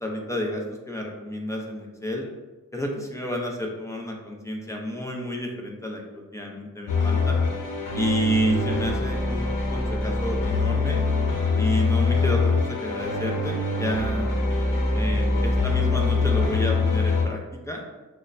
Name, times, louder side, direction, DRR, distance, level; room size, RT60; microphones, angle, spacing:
voice 1, 0.0-2.2 2.7-7.4 7.9-11.0 11.6-14.4 14.9-17.4 17.7-17.8, equal, 10° left, 0 dB, 0.5 m, -30 dB
sound 1, 6.9-17.3, left 3 dB, 75° left, 0.8 m, -24 dB
6.3 x 2.1 x 2.5 m, 1.2 s
wide cardioid pair, 145°, 32 cm